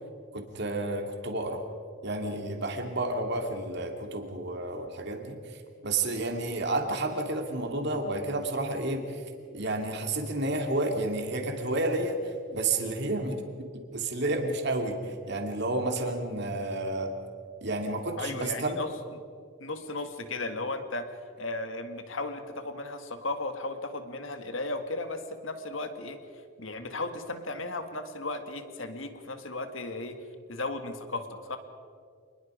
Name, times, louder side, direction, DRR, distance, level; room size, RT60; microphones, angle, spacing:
voice 1, 0.3-1.6 2.0-5.6 5.8-9.2 9.5-17.1 17.6-18.8, right 2 dB, 55° right, 3 dB, 2.7 m, -31 dB
voice 2, 18.2-18.9 19.6-26.2 26.6-30.2 30.5-31.6, left 2 dB, 75° left, 7 dB, 1.9 m, -35 dB
27.0 x 21.0 x 5.1 m, 2.2 s
head